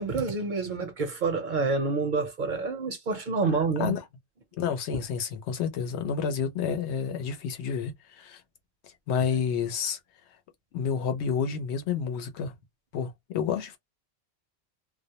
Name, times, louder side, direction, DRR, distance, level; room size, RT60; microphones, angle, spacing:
voice 1, 0.0-3.9 4.9-5.0, right 4 dB, 55° right, 0.6 m, -28 dB
voice 2, 4.6-8.4 9.1-10.0 10.7-12.5 12.9-13.8, left 7 dB, 80° left, 0.9 m, -29 dB
2.2 x 2.0 x 2.8 m
omnidirectional pair, 1.1 m